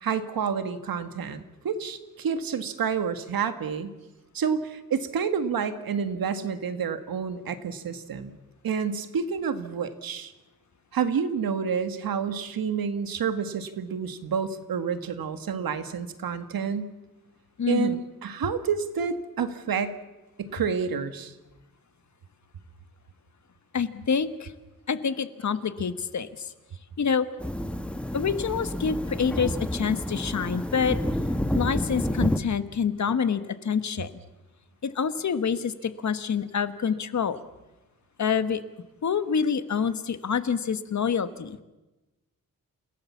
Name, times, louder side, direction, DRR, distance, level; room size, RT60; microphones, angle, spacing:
voice 1, 0.0-3.9 4.3-8.4 8.6-10.3 10.9-16.9 17.7-20.0 20.4-21.3, right 6 dB, 90° right, 10 dB, 1.7 m, -29 dB
voice 2, 17.6-18.0 23.7-24.5 24.9-26.5 27.0-27.3 28.1-31.0 31.5-34.1 34.8-37.4 38.2-38.6 39.0-41.6, left 6 dB, 55° left, 12 dB, 1.3 m, -27 dB
sound 1, 27.4-32.4, left 1 dB, 5° left, 1.2 m, -29 dB
29.0 x 17.0 x 7.2 m, 1.1 s
wide cardioid pair, 135°, 34 cm